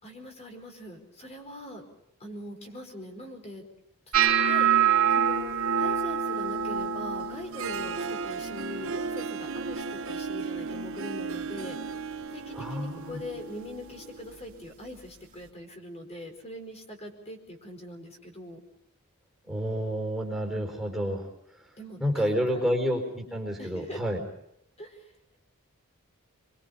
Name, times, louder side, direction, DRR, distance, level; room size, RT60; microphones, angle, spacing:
voice 1, 0.0-1.8 2.2-3.6 4.2-11.8 12.3-18.6 21.8-22.8 23.6-24.0 24.8-25.1, left 1 dB, 30° left, 3 dB, 4.7 m, -42 dB
sound 1, 4.1-10.2 10.5-11.0 11.4-11.9 12.5-12.7 14.5-14.6, right 8 dB, 80° right, 2.9 m, -27 dB
Harp, 7.3-14.4, right 5 dB, 65° right, 0.9 m, -36 dB
voice 2, 12.6-13.2 19.4-21.2 22.0-24.2, equal, ahead, 1 dB, 4.2 m, -29 dB
26.0 x 24.5 x 5.5 m, 0.80 s
head